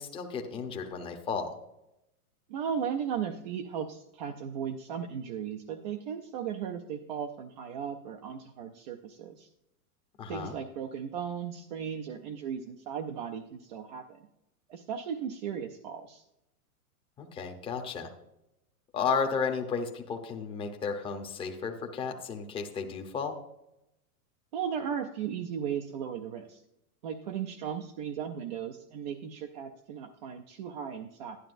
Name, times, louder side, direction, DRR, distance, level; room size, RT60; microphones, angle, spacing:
voice 1, 0.0-1.6 10.2-10.6 17.2-18.1 18.9-23.4, left 5 dB, 10° left, 3 dB, 0.7 m, -33 dB
voice 2, 2.5-9.5 10.3-14.2 14.7-16.2 24.5-26.6 27.0-31.4, right 8 dB, 30° right, 4 dB, 0.4 m, -36 dB
11.5 x 11.0 x 2.5 m, 0.86 s
supercardioid pair, 155°, 45 cm